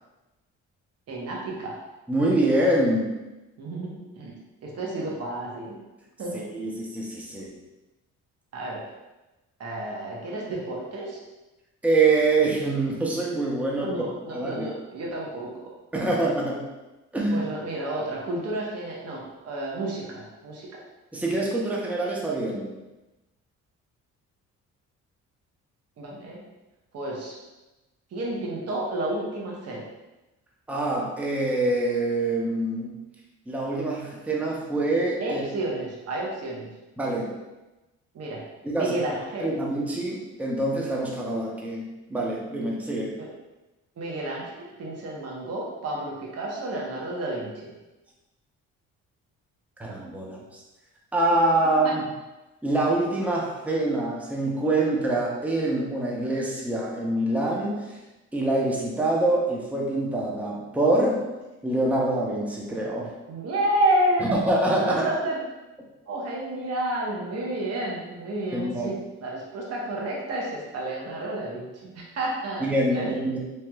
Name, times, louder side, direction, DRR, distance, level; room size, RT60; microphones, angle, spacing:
voice 1, 1.1-1.8 3.6-4.3 4.6-5.8 6.2-6.4 8.5-8.9 9.6-11.2 13.8-15.6 17.3-20.7 26.0-26.4 26.9-27.4 28.1-29.8 35.2-36.7 38.1-38.4 38.7-39.5 43.2-43.3 44.0-44.5 44.8-47.7 51.8-52.0 63.3-64.4 64.8-65.4 66.1-73.2, right 1 dB, 55° right, -3 dB, 0.9 m, -30 dB
voice 2, 2.1-3.1 6.3-7.5 11.8-13.9 14.3-14.7 15.9-16.6 17.1-17.4 21.1-22.8 30.7-32.9 33.5-35.4 37.0-37.4 38.6-39.0 39.4-43.2 49.8-50.4 51.1-52.1 52.6-58.0 58.3-61.2 61.6-63.1 64.2-65.1 68.5-68.9 72.6-73.4, right 2 dB, 5° right, -3 dB, 0.6 m, -25 dB
3.2 x 2.9 x 2.2 m, 1.1 s
cardioid pair, 90°, 30 cm